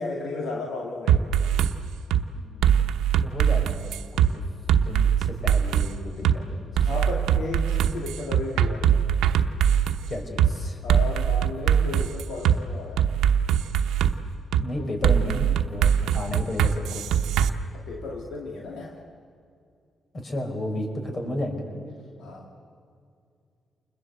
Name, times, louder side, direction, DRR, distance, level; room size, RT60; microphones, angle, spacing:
voice 1, 0.0-1.3 6.8-8.9 10.8-13.1 14.8-14.9 17.7-19.0 22.2-22.5, left 2 dB, 80° left, 0 dB, 2.5 m, -34 dB
sound 1, 1.1-1.7 2.1-2.2 2.6-4.3 4.7-5.9 6.2-6.4 6.8-10.0 10.4-10.5 10.9-12.6 13.0-14.1 14.5-14.7 15.0-17.5, right 9 dB, 90° right, 1.0 m, -21 dB
voice 2, 2.3-2.8 3.2-4.4 4.8-6.9 10.1-10.8 14.6-17.1 20.1-21.9, left 1 dB, 40° left, 4 dB, 5.7 m, -33 dB
29.0 x 21.0 x 8.1 m, 2.4 s
cardioid pair, 65°, 0 cm